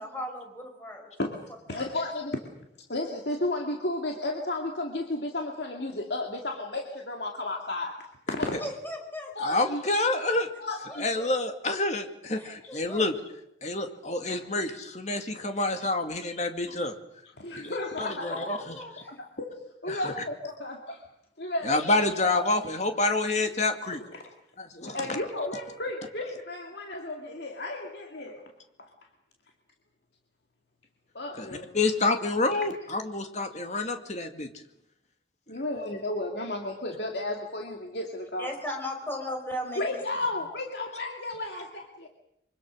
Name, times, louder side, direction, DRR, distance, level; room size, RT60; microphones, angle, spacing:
voice 1, 0.0-1.1 1.7-1.9 8.4-9.7 10.9-11.3 12.4-13.1 18.2-19.1 38.4-39.8, left 1 dB, 10° left, 2 dB, 5.2 m, -37 dB
voice 2, 1.7-2.4 2.9-7.9 8.3-8.6 9.4-9.8 10.6-11.0 14.3-14.4 17.4-18.5 19.1-21.0 21.4-22.5 24.1-24.2 24.9-28.4 28.8-28.9 31.1-31.7 35.5-38.5 39.8-42.1, left 2 dB, 65° left, 2 dB, 2.4 m, -33 dB
voice 3, 9.4-10.5 11.0-13.1 13.6-16.9 18.0-18.8 19.9-20.1 21.6-24.0 24.6-25.2 31.3-34.5, left 2 dB, 40° left, 6 dB, 2.3 m, -28 dB
25.0 x 25.0 x 6.4 m, 0.80 s
head